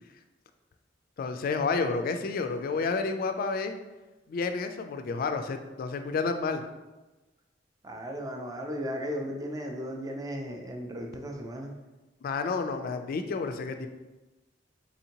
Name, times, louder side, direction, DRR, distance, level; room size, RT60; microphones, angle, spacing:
voice 1, 1.2-3.7 4.3-6.6 12.2-13.9, left 4 dB, 50° left, 7 dB, 0.3 m, -30 dB
voice 2, 7.8-11.7, equal, 20° right, 2 dB, 0.4 m, -36 dB
4.2 x 2.7 x 2.8 m, 1.1 s
head